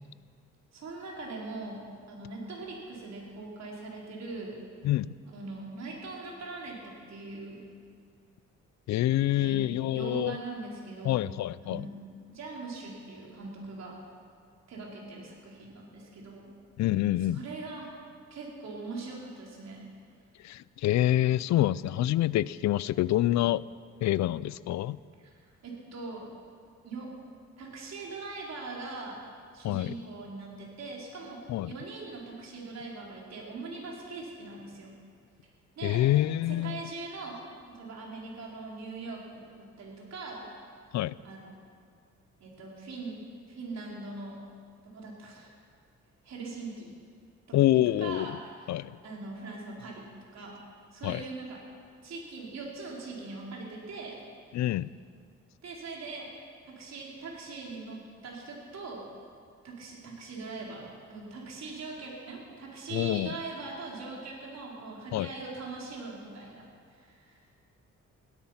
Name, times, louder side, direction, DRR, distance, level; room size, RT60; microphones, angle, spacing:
voice 1, 0.7-4.6 5.2-7.6 9.4-11.3 11.6-12.0 12.3-14.0 14.7-16.5 17.2-17.9 18.3-19.9 25.2-25.3 25.6-26.3 26.8-27.1 27.6-29.2 29.5-35.0 35.8-36.0 36.5-37.4 37.7-40.7 41.2-41.5 42.4-44.4 44.8-45.5 46.2-46.9 47.5-48.7 49.0-50.6 50.9-51.6 52.0-54.2 55.6-56.3 56.7-59.1 59.6-67.5, right 3 dB, 60° right, -2 dB, 4.2 m, -41 dB
voice 2, 8.9-10.4 11.0-11.9 16.8-17.4 20.4-23.6 24.0-25.0 29.6-29.9 31.5-31.7 35.8-36.8 40.9-41.2 47.5-48.4 48.7-49.0 51.0-51.2 54.5-54.9 62.9-63.3 65.1-65.3, left 14 dB, 65° left, 20 dB, 0.5 m, -26 dB
17.0 x 13.0 x 5.8 m, 2.1 s
cardioid pair, 90°, 30 cm